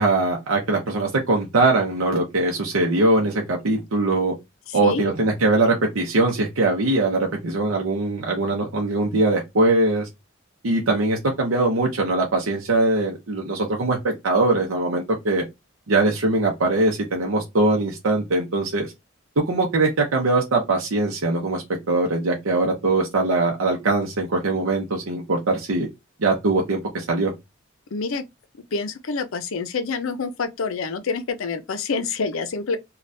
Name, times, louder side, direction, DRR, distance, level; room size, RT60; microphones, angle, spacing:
voice 1, 0.0-4.3 4.7-10.1 10.6-15.5 15.9-18.9 19.4-25.9 26.2-27.3, right 2 dB, 80° right, 0.7 m, -21 dB
voice 2, 4.7-5.1 27.9-28.2 28.7-32.8, left 4 dB, 75° left, 0.5 m, -27 dB
3.3 x 2.3 x 2.6 m
head